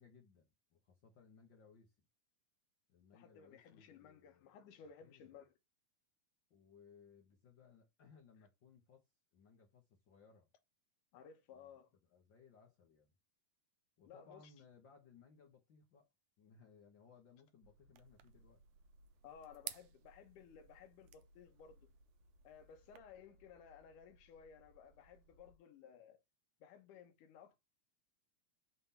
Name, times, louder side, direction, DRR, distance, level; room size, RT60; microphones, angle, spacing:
voice 1, 0.0-1.9 2.9-4.5 5.0-5.4 6.5-9.1 9.3-10.5 11.5-11.7 12.1-13.1 14.0-16.1 16.4-18.6, left 5 dB, 60° left, 1.2 m, -64 dB
voice 2, 3.1-5.5 11.1-11.9 14.0-14.5 19.2-21.9 22.4-26.2 26.6-27.6, left 7 dB, 75° left, 2.5 m, -58 dB
sound 1, 17.6-25.6, equal, 65° right, 2.6 m, -69 dB
sound 2, 17.9-23.0, right 13 dB, 80° right, 2.1 m, -55 dB
5.9 x 3.5 x 5.5 m
omnidirectional pair, 3.7 m